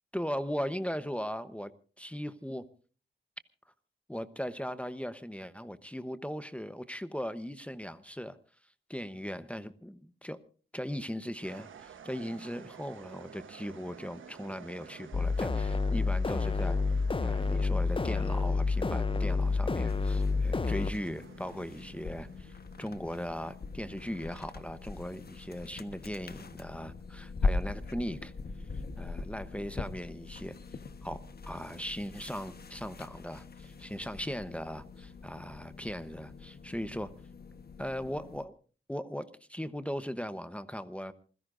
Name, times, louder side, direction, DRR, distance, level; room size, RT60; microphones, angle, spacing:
voice 1, 0.1-1.7 2.0-2.7 4.1-8.4 8.9-10.4 10.7-16.8 17.2-28.3 29.0-30.6 31.0-31.2 31.5-37.1 37.8-38.5 38.9-41.1, equal, 5° left, 12 dB, 1.0 m, -38 dB
sound 1, 11.4-23.7, right 7 dB, 80° right, 1.2 m, -51 dB
sound 2, 15.1-20.9, left 4 dB, 25° left, 0.6 m, -29 dB
sound 3, 19.9-38.5, left 3 dB, 50° left, 1.2 m, -41 dB
27.5 x 16.0 x 2.6 m, 0.39 s
cardioid pair, 70°, 20 cm